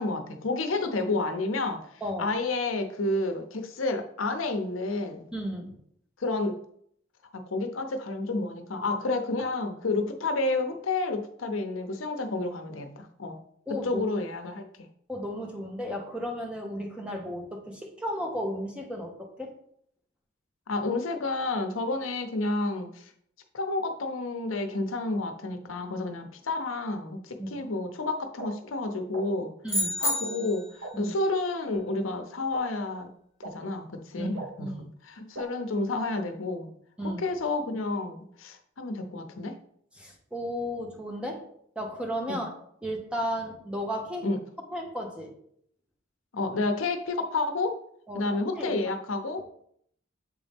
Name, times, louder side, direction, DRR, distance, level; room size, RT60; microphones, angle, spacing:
voice 1, 0.0-1.9 2.2-5.3 6.2-6.6 7.3-13.4 13.7-14.7 20.7-23.1 23.5-29.5 30.0-33.1 33.4-36.7 37.0-39.6 42.3-42.5 44.2-44.4 46.3-47.8 48.1-49.4, left 2 dB, 85° left, 6 dB, 0.7 m, -30 dB
voice 2, 2.0-2.3 5.3-5.8 9.4-9.5 13.7-14.1 15.1-19.5 27.4-27.6 29.6-30.0 30.9-31.1 34.2-34.3 34.6-34.8 37.0-37.2 40.0-41.4 41.8-42.5 42.8-44.3 44.7-45.3 48.1-48.8, equal, 5° right, 1 dB, 0.9 m, -34 dB
sound 1, 28.4-28.5 29.1-29.2 30.0-30.1 30.8-30.9 31.7-31.8 32.5-32.6 33.4-33.5 34.3-34.5 35.3-35.4, right 2 dB, 75° right, 1.1 m, -38 dB
sound 2, 29.7-30.8, left 1 dB, 15° left, 1.5 m, -29 dB
7.5 x 3.9 x 3.5 m, 0.67 s
head